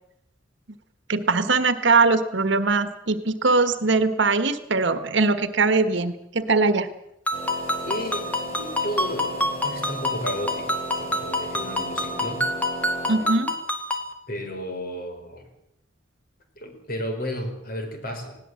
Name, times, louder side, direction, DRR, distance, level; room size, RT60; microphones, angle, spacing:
voice 1, 1.1-6.9 13.1-13.5, right 3 dB, 60° right, 11 dB, 1.4 m, -21 dB
sound 1, 7.3-13.6, equal, 30° left, 4.8 m, -36 dB
Ringtone, 7.3-14.1, left 1 dB, 10° left, 2.0 m, -28 dB
voice 2, 7.8-12.5 14.3-15.5 16.6-18.4, equal, 45° left, 5 dB, 4.7 m, -33 dB
20.0 x 17.5 x 7.9 m, 0.79 s
head